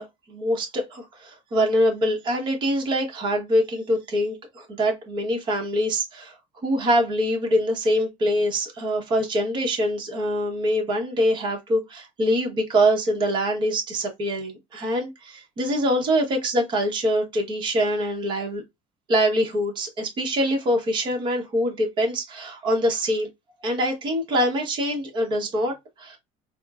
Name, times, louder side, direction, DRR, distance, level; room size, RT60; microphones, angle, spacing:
voice 1, 0.0-6.4 6.6-18.6 19.1-23.3 23.6-26.2, equal, 35° right, 0.9 m, -24 dB
4.0 x 2.0 x 2.3 m
cardioid pair, 160°, 14 cm